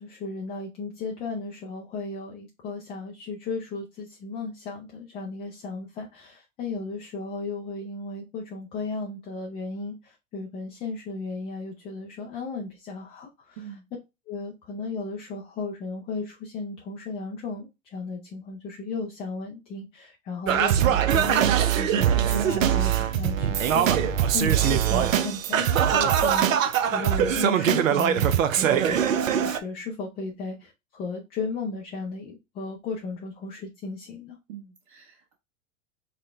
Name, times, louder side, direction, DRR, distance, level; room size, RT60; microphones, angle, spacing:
voice 1, 0.0-13.6 14.3-26.5 26.9-28.9 29.4-34.4, left 3 dB, 15° left, -1 dB, 0.3 m, -35 dB
voice 2, 13.6-13.9 28.6-28.8 34.5-35.3, right 11 dB, 50° right, -2 dB, 1.2 m, -43 dB
Singing, 20.5-29.6, right 9 dB, 75° right, 0.6 m, -22 dB
4.1 x 2.1 x 3.1 m, 0.24 s
hypercardioid pair, 100°, 40 cm